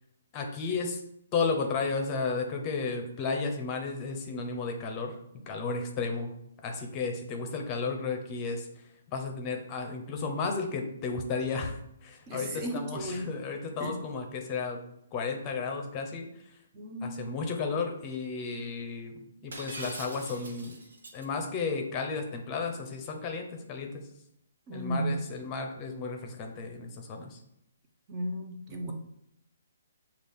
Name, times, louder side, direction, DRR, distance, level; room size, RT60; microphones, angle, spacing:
voice 1, 0.3-1.0 1.3-5.2 5.5-6.3 6.6-14.8 15.1-16.3 17.0-20.8 21.1-24.0 24.7-27.4 28.7-28.9, left 4 dB, 25° left, 3 dB, 0.7 m, -33 dB
voice 2, 12.3-13.4 13.8-14.0 16.7-17.3 24.7-25.2 28.1-28.9, right 1 dB, 25° right, 2 dB, 0.8 m, -34 dB
Shatter, 19.5-21.3, right 2 dB, 75° right, 1.4 m, -43 dB
6.2 x 2.4 x 3.5 m, 0.76 s
hypercardioid pair, 145°, 0 cm